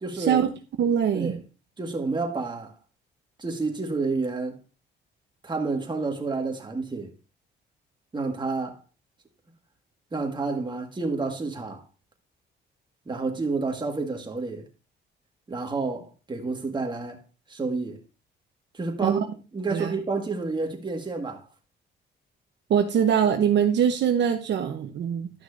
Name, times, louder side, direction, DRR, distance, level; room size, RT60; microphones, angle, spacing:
voice 1, 0.0-0.4 1.1-1.4 1.8-2.7 3.4-4.6 5.4-7.1 8.1-8.8 10.1-11.8 13.1-14.7 15.5-17.2 17.5-18.0 18.7-19.2 19.5-21.5, right 3 dB, 25° right, 1.8 m, -29 dB
voice 2, 0.8-1.4 19.0-19.2 19.7-19.9 22.7-25.3, right 8 dB, 65° right, 0.9 m, -22 dB
12.0 x 6.0 x 2.6 m
cardioid pair, 90°, 20 cm